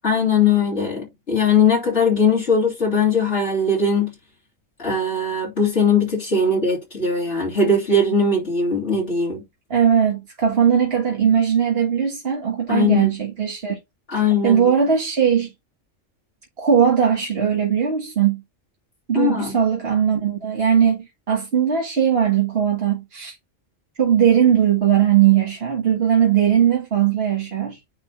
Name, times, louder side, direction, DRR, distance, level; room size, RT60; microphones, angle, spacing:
voice 1, 0.0-4.1 4.8-9.4 12.7-13.1 14.1-14.6 19.1-19.6, left 4 dB, 60° left, 3.4 m, -20 dB
voice 2, 9.7-13.8 14.1-15.5 16.6-18.4 19.1-23.3 24.0-27.8, right 8 dB, 50° right, 1.7 m, -19 dB
9.6 x 3.3 x 4.4 m
omnidirectional pair, 1.3 m